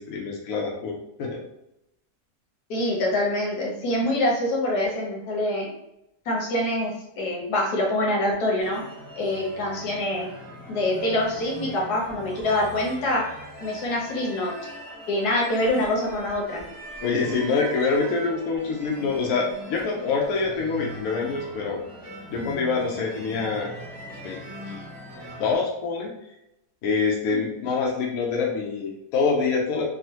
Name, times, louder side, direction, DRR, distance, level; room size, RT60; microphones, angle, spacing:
voice 1, 0.0-1.4 17.0-21.8 22.3-23.7 24.2-24.4 24.7-24.8 25.4-26.1 26.8-29.9, left 4 dB, 70° left, -1 dB, 1.0 m, -25 dB
voice 2, 2.7-5.7 6.3-8.8 9.2-10.3 10.7-13.3 13.6-14.5 15.1-16.6 22.3-22.5, left 1 dB, 85° left, -2 dB, 1.4 m, -25 dB
sound 1, 8.6-25.5, equal, 20° right, 0.7 m, -41 dB
3.7 x 2.0 x 2.8 m, 0.84 s
omnidirectional pair, 1.6 m